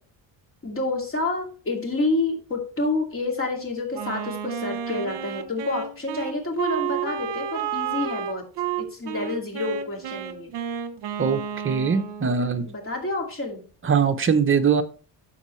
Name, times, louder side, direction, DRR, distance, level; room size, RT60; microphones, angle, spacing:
voice 1, 0.6-8.4 8.8-10.5 12.7-13.6, left 2 dB, 30° left, 1 dB, 2.4 m, -28 dB
Wind instrument woodwind instrument, 3.9-12.4, right 8 dB, 65° right, 1.0 m, -31 dB
voice 2, 11.2-12.7 13.8-14.8, right 6 dB, 30° right, 7 dB, 0.8 m, -22 dB
13.0 x 4.6 x 3.2 m, 0.38 s
cardioid pair, 145°, 43 cm